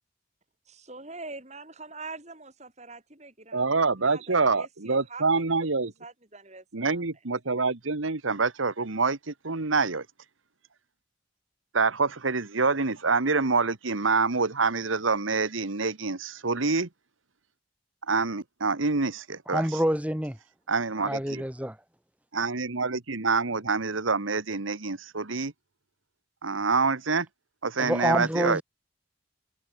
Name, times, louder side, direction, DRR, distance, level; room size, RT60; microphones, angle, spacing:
voice 1, 0.9-5.2 5.8-7.0, right 3 dB, 35° right, 5.8 m, -44 dB
voice 2, 3.5-5.9 6.7-10.0 11.7-16.9 18.1-19.6 20.7-21.4 22.3-25.5 26.4-27.3 27.6-28.6, right 4 dB, 85° right, 1.5 m, -26 dB
voice 3, 19.5-20.4 21.0-21.8 27.8-28.6, equal, 5° right, 2.2 m, -27 dB
head